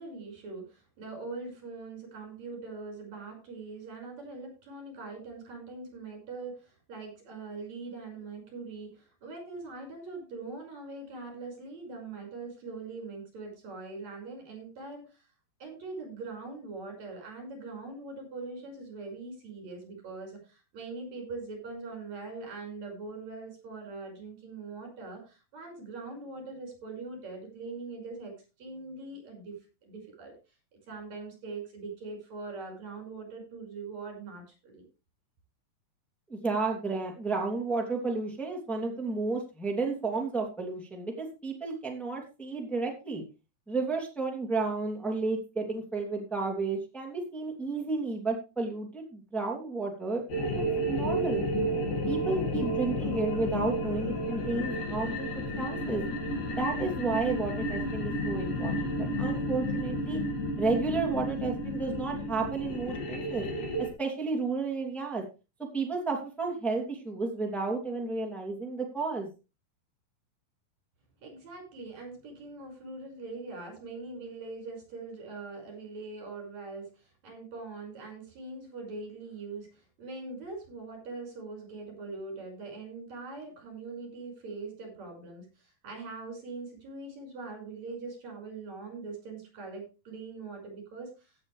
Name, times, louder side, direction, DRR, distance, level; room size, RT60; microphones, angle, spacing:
voice 1, 0.0-15.3 15.6-28.3 28.6-30.3 30.9-34.8 71.2-91.3, right 3 dB, 50° right, 2 dB, 7.0 m, -42 dB
voice 2, 36.3-43.2 43.7-50.2 50.5-51.4 52.1-55.3 55.6-56.0 56.6-60.2 60.6-63.5 64.0-65.2 65.7-69.3, right 3 dB, ahead, -1 dB, 2.4 m, -32 dB
sound 1, 50.3-63.9, equal, 70° left, 3.8 m, -32 dB
16.5 x 8.0 x 3.4 m, 0.30 s
omnidirectional pair, 4.1 m